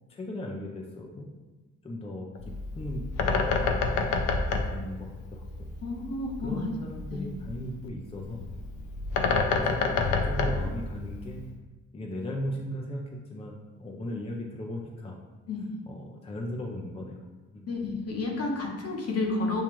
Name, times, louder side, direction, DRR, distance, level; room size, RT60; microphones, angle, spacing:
voice 1, 0.1-1.3 1.8-3.7 4.5-5.7 6.4-8.5 9.5-11.4 11.9-13.0 13.3-15.2 15.9-17.2 17.5-17.7, left 1 dB, 20° left, 0 dB, 0.5 m, -37 dB
Bird, 2.3-11.5, left 4 dB, 85° left, 0.5 m, -29 dB
voice 2, 5.8-6.7 7.1-7.3 15.5-15.8 17.7-19.6, left 3 dB, 55° left, 0 dB, 1.0 m, -31 dB
7.0 x 2.4 x 3.0 m, 1.2 s
cardioid pair, 90°, 30 cm